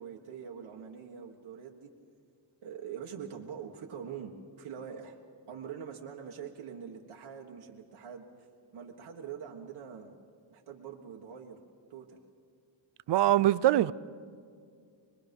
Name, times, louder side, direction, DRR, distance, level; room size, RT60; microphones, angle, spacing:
voice 1, 0.0-1.9 2.6-5.2 5.5-8.5 8.7-10.1 10.5-11.6 11.9-12.2, right 7 dB, 80° right, 1.6 m, -44 dB
voice 2, 13.1-13.9, right 13 dB, 60° right, 0.5 m, -23 dB
25.0 x 21.0 x 5.4 m
wide cardioid pair, 150°, 48 cm